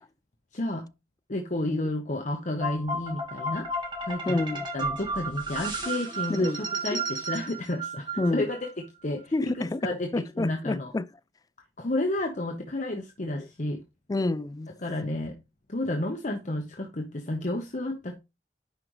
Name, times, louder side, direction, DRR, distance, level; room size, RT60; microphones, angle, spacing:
voice 1, 0.5-0.9 1.3-3.7 4.0-4.4 4.7-9.3 9.8-10.9 11.8-13.8 14.8-15.4 15.7-18.2, left 1 dB, 45° left, 1.0 m, -31 dB
sound 1, 2.6-8.7, right 2 dB, 25° right, 2.1 m, -33 dB
voice 2, 4.3-4.7 6.4-6.6 6.9-7.0 8.2-8.5 9.3-9.8 10.1-11.1 13.4-13.5 14.1-14.7, left 2 dB, 20° left, 0.3 m, -28 dB
10.5 x 5.1 x 3.1 m
head